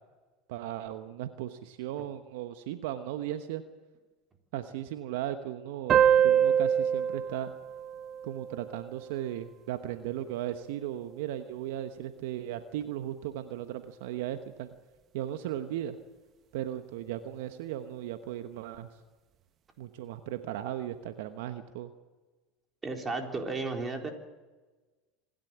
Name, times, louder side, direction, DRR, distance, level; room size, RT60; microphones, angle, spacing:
voice 1, 0.5-3.6 4.5-7.5 8.2-14.7 15.1-16.0 16.5-18.9 19.8-21.9, right 12 dB, 70° right, 9 dB, 1.1 m, -36 dB
sound 1, 5.9-9.0, right 9 dB, 40° right, 1.2 m, -25 dB
voice 2, 22.8-24.1, right 3 dB, 25° right, 3 dB, 4.1 m, -33 dB
26.5 x 11.5 x 8.7 m, 1.2 s
hypercardioid pair, 85°, 0 cm